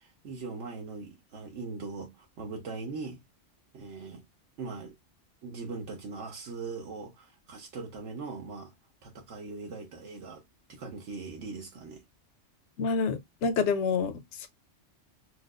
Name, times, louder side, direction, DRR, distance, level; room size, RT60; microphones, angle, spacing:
voice 1, 0.0-3.2 3.7-4.2 4.6-4.9 5.4-8.7 9.0-10.4 10.7-12.0, right 4 dB, 75° right, 1.1 m, -40 dB
voice 2, 12.8-14.5, left 5 dB, 75° left, 0.9 m, -28 dB
4.4 x 2.0 x 2.3 m
omnidirectional pair, 1.3 m